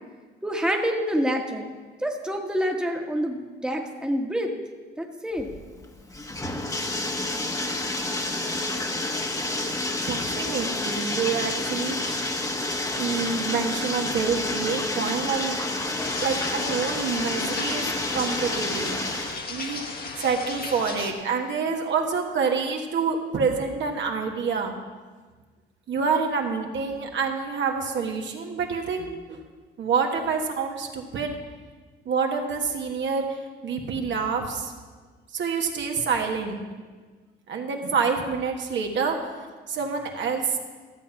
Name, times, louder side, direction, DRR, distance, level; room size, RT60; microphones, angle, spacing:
voice 1, 0.4-1.7 2.0-4.5 5.0-5.5, equal, 5° right, 2 dB, 1.3 m, -27 dB
Bathtub (filling or washing), 5.4-19.4, left 2 dB, 15° left, 1.1 m, -29 dB
voice 2, 10.1-12.4 12.9-17.8 18.1-19.0 19.5-19.8 20.2-24.7 25.9-29.4 29.8-31.4 32.0-33.2 33.6-34.7 35.3-36.6 37.5-40.6, right 5 dB, 65° right, 2 dB, 1.5 m, -27 dB
sound 1, 16.0-21.1, left 4 dB, 50° left, 1.5 m, -36 dB
13.5 x 7.3 x 5.8 m, 1.4 s
cardioid pair, 90°, 20 cm